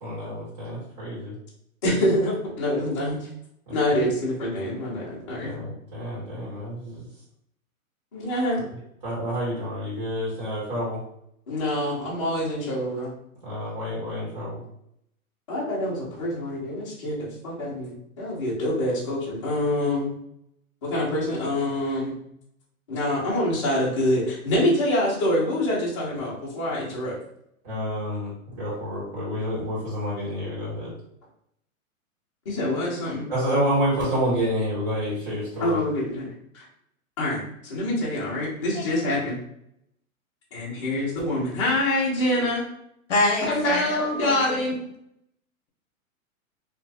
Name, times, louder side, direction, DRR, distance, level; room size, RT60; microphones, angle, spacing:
voice 1, 0.0-1.3 5.4-7.0 9.0-11.0 13.4-14.6 27.6-30.9 33.3-35.8, equal, 30° right, -9 dB, 1.5 m, -28 dB
voice 2, 1.8-3.3 3.7-5.5 8.1-8.6 11.5-13.1 15.5-20.1 20.8-22.2 22.9-27.1 32.4-33.3 35.6-36.6 37.2-39.4 40.5-42.6 43.5-44.9, left 1 dB, 20° left, -7 dB, 0.7 m, -26 dB
voice 3, 38.7-39.1 43.1-44.6, left 2 dB, 55° left, 2 dB, 0.9 m, -26 dB
2.5 x 2.5 x 3.3 m, 0.73 s
hypercardioid pair, 180°, 42 cm